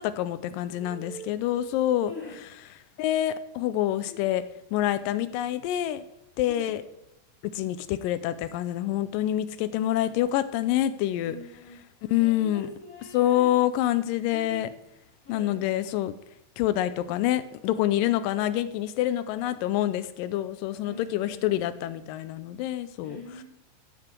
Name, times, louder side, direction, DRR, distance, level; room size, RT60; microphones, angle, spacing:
voice 1, 0.0-2.1 3.0-4.4 4.7-6.0 6.4-6.8 7.4-11.4 12.1-12.7 13.1-14.7 15.3-16.1 16.6-23.2, left 13 dB, 80° left, 13 dB, 2.2 m, -26 dB
voice 2, 0.7-1.2 2.0-2.4 4.1-4.2 6.6-6.8 11.2-11.8 12.2-13.5 14.3-14.7 15.2-15.5 20.8-21.6 23.0-23.4, left 2 dB, 25° left, -6 dB, 4.3 m, -43 dB
12.5 x 7.1 x 4.5 m, 0.87 s
omnidirectional pair, 4.0 m